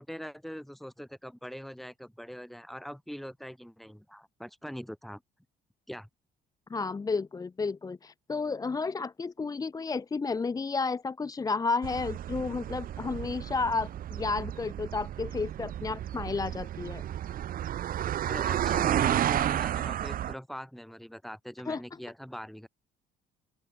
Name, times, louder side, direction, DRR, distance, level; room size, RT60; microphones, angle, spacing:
voice 1, 0.0-5.2 5.9-6.1 18.3-22.7, equal, ahead, 2.2 m, -42 dB
voice 2, 6.7-17.0 21.7-21.8, left 4 dB, 20° left, 0.8 m, -32 dB
sound 1, 11.8-20.3, right 11 dB, 55° right, 1.5 m, -32 dB
open air
cardioid pair, 110°, 17 cm